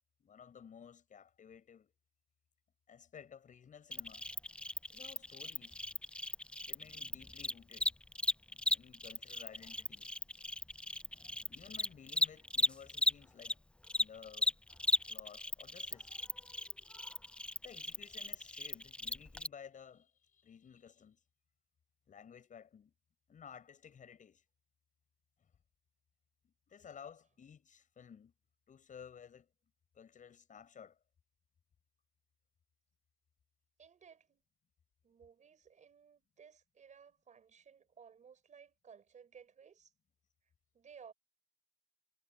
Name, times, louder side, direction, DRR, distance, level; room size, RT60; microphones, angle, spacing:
voice 1, 0.2-1.9 2.9-4.3 4.9-5.8 6.7-8.0 8.5-10.1 11.5-13.6 14.0-14.6 15.1-16.1 17.6-21.2 22.1-22.9 23.3-24.4 26.4-28.3 28.7-29.5 29.9-31.0, left 7 dB, 75° left, 7.8 m, -55 dB
Cricket, 3.9-13.5 13.8-19.5, left 1 dB, 10° left, 0.3 m, -36 dB
voice 2, 33.8-34.4 35.0-39.9 40.7-41.1, right 7 dB, 70° right, 5.5 m, -58 dB
wide cardioid pair, 140°, 13 cm